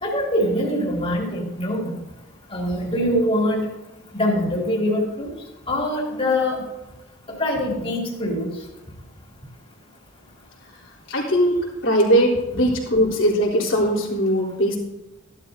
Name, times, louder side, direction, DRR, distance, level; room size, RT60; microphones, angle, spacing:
voice 1, 0.0-2.0 2.5-3.6 4.1-5.3 5.7-6.6 7.4-8.5, left 1 dB, 25° left, -2 dB, 2.8 m, -23 dB
voice 2, 11.1-14.8, equal, 70° left, -3 dB, 3.5 m, -20 dB
15.0 x 12.0 x 2.7 m, 0.97 s
head